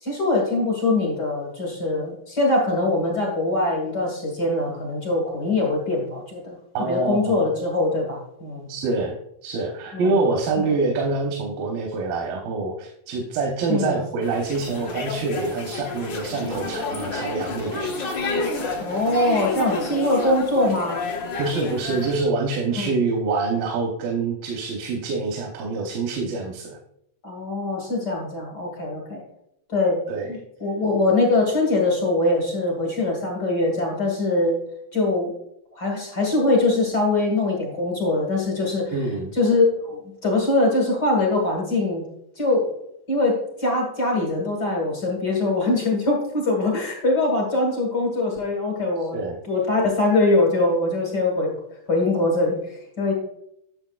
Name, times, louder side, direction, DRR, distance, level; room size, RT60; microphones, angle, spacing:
voice 1, 0.0-8.7 9.9-10.3 10.6-10.7 13.7-14.1 18.8-21.1 22.8-23.0 27.2-29.2 29.7-30.0 30.3-34.6 34.9-35.3 35.7-38.9 39.3-42.0 42.4-42.7 43.1-49.2 49.4-51.5 51.9-53.1, left 2 dB, 50° left, 0 dB, 1.3 m, -22 dB
voice 2, 6.7-7.5 8.7-18.0 21.4-26.8 30.1-30.3 38.9-39.4 49.1-49.4, right 3 dB, 90° right, 1 dB, 2.8 m, -26 dB
sound 1, 14.2-22.2, left 3 dB, 70° left, 1.0 m, -30 dB
9.9 x 7.1 x 2.3 m, 0.77 s
omnidirectional pair, 4.0 m